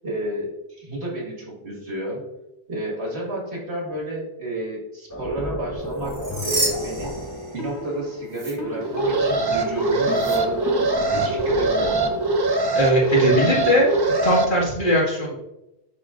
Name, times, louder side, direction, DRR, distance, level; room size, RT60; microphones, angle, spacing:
voice 1, 0.0-2.2 2.7-7.1 7.5-12.2, right 1 dB, 80° right, -3 dB, 2.2 m, -31 dB
sound 1, 5.1-12.4, equal, 15° left, 0.9 m, -33 dB
sound 2, 5.9-7.9 8.3-8.5 10.1-10.4, right 1 dB, 55° right, 2.3 m, -29 dB
Alarm, 8.8-14.5, right 2 dB, 30° right, 0.5 m, -22 dB
voice 2, 12.7-13.9 14.2-15.4, equal, 50° left, -5 dB, 2.1 m, -19 dB
11.0 x 3.7 x 2.5 m, 0.93 s
omnidirectional pair, 1.1 m